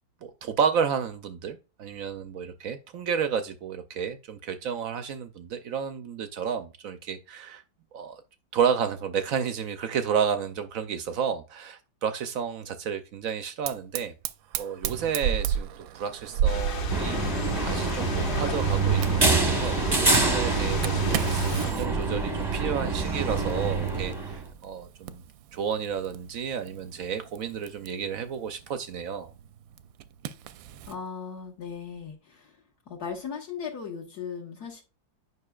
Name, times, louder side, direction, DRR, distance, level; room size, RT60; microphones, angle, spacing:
voice 1, 0.2-7.6 7.9-8.2 8.5-14.1 14.6-25.2 25.5-29.3, right 7 dB, 70° right, 0.8 m, -31 dB
Fire, 13.7-31.0, right 9 dB, 85° right, 1.3 m, -36 dB
sound 1, 16.5-21.7, equal, 80° left, 2.0 m, -32 dB
sound 2, 16.9-24.4, right 3 dB, 20° right, 0.7 m, -26 dB
voice 2, 30.9-32.6 32.9-34.8, left 6 dB, 55° left, 1.6 m, -37 dB
9.5 x 5.5 x 2.3 m
omnidirectional pair, 2.0 m